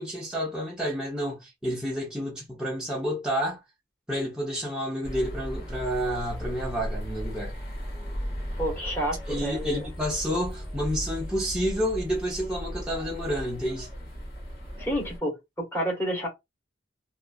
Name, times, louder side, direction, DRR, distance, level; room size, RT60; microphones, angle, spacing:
voice 1, 0.0-3.6 4.1-7.5 9.3-13.9, equal, 5° right, 0.6 m, -30 dB
sound 1, 5.0-15.2, equal, 55° left, 0.9 m, -36 dB
voice 2, 8.6-9.9 14.8-16.3, equal, 15° left, 1.2 m, -30 dB
2.5 x 2.3 x 2.2 m
head